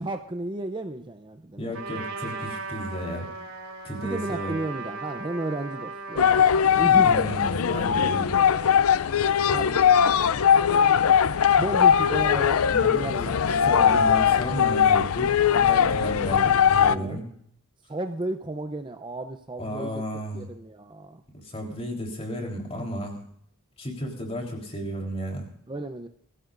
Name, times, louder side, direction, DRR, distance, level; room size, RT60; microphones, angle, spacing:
voice 1, 0.0-2.0 4.0-6.4 6.8-7.4 9.5-10.0 11.6-14.0 16.8-17.2 17.9-19.9 20.3-21.2 25.7-26.1, right 2 dB, 20° right, 7 dB, 0.6 m, -33 dB
voice 2, 1.6-3.3 3.8-4.5 6.9-8.4 12.7-13.3 13.6-17.3 19.6-20.5 21.5-23.2 23.8-25.5, equal, 30° left, 1 dB, 3.7 m, -33 dB
Trumpet, 1.7-6.6, right 3 dB, 90° right, 3.3 m, -37 dB
sound 1, 6.2-17.0, left 8 dB, 90° left, 0.5 m, -20 dB
23.0 x 15.5 x 2.6 m, 0.66 s
head